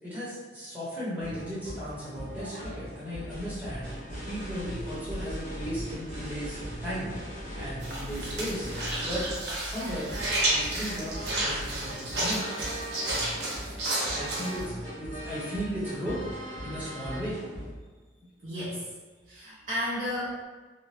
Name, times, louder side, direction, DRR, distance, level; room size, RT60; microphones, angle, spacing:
voice 1, 0.0-3.9 4.2-7.2 7.5-8.7 9.0-9.3 9.6-10.1 10.4-12.5 14.1-16.2 16.6-17.4, equal, 10° right, -10 dB, 0.9 m, -36 dB
sound 1, 1.2-17.7, equal, 45° left, 0.9 m, -40 dB
sound 2, 3.3-11.9, equal, 15° left, 0.3 m, -43 dB
sound 3, 7.8-14.6, right 1 dB, 65° right, 0.9 m, -31 dB
voice 2, 13.8-14.2 18.4-18.9 19.3-20.4, equal, 45° right, -9 dB, 0.6 m, -34 dB
2.7 x 2.1 x 3.2 m, 1.4 s
head